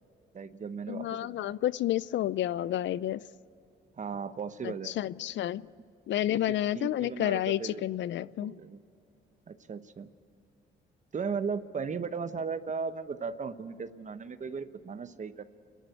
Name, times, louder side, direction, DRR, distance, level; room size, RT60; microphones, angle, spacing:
voice 1, 0.3-1.5 4.0-4.9 6.3-7.8 8.4-8.8 9.5-10.1 11.1-15.4, right 5 dB, 40° right, 11 dB, 1.0 m, -36 dB
voice 2, 0.9-3.2 4.6-5.6 6.1-8.6, left 13 dB, 70° left, 19 dB, 0.5 m, -30 dB
28.5 x 11.0 x 8.4 m, 2.7 s
cardioid pair, 90°, 20 cm